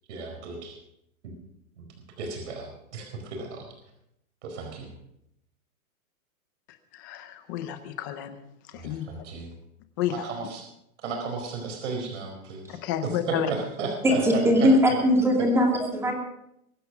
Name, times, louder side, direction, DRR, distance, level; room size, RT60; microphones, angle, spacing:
voice 1, 0.1-0.7 1.2-1.3 1.8-1.9 2.2-3.7 4.4-4.9 8.8-9.5 10.2-10.6 11.0-12.8 13.3-14.9, right 4 dB, 55° right, 2 dB, 4.6 m, -34 dB
voice 2, 6.7-8.4 8.6-9.2 10.0-10.3 12.7-13.5, left 10 dB, 15° left, 9 dB, 0.6 m, -31 dB
voice 3, 14.0-16.1, equal, 5° right, 1 dB, 2.5 m, -20 dB
22.5 x 9.3 x 6.0 m, 0.79 s
supercardioid pair, 175°, 43 cm